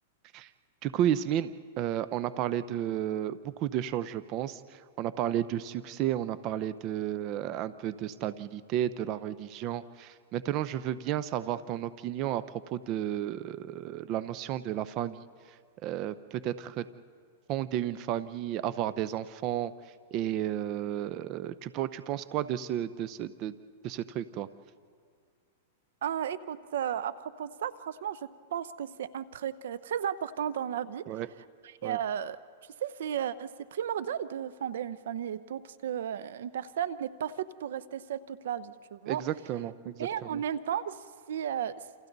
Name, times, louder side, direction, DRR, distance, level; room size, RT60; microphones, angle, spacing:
voice 1, 0.8-1.5 1.8-12.4 12.7-15.6 15.8-16.9 17.5-19.7 20.1-23.5 23.8-24.5 31.1-31.3 31.8-32.0 39.1-40.4, right 11 dB, 40° right, 14 dB, 0.7 m, -32 dB
voice 2, 26.0-31.0 31.6-32.4 32.8-39.2 39.8-41.7, right 9 dB, 75° right, 16 dB, 0.8 m, -34 dB
28.5 x 28.5 x 4.0 m, 2.1 s
hypercardioid pair, 130°, 0 cm